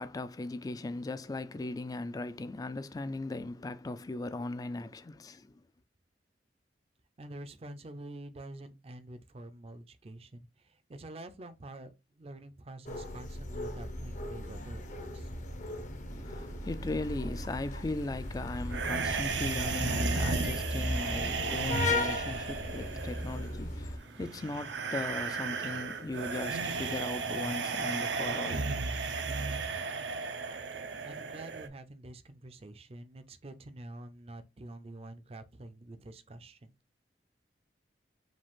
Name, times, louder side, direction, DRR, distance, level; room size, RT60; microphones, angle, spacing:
voice 1, 0.0-5.5 16.1-28.7, left 2 dB, 20° left, 0.3 m, -38 dB
voice 2, 7.2-15.3 31.0-36.7, right 1 dB, 35° right, 0.5 m, -47 dB
sound 1, 12.8-24.0, left 2 dB, 45° left, 0.7 m, -37 dB
sound 2, 18.7-31.7, right 4 dB, 85° right, 0.6 m, -34 dB
5.0 x 2.4 x 3.5 m
head